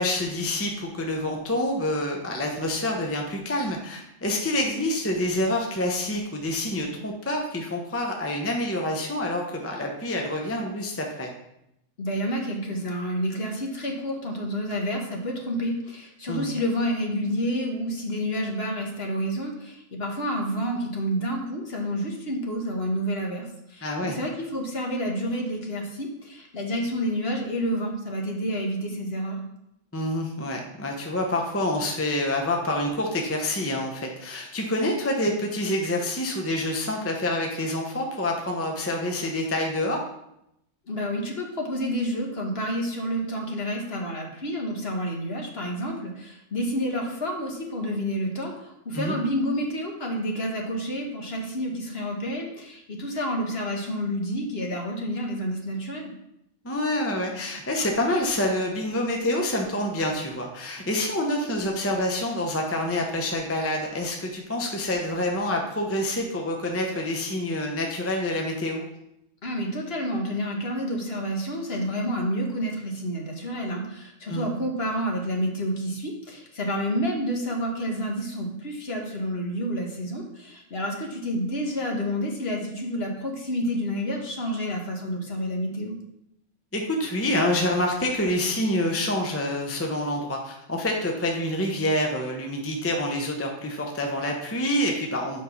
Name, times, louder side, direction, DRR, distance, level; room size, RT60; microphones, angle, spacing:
voice 1, 0.0-11.3 16.3-16.5 23.8-24.2 29.9-40.0 48.9-49.2 56.6-68.8 74.3-74.5 86.7-95.4, left 1 dB, 10° left, 1 dB, 0.8 m, -27 dB
voice 2, 12.0-29.4 40.9-56.1 69.4-85.9, equal, 50° left, 1 dB, 1.5 m, -29 dB
6.2 x 5.4 x 5.9 m, 0.82 s
omnidirectional pair, 1.4 m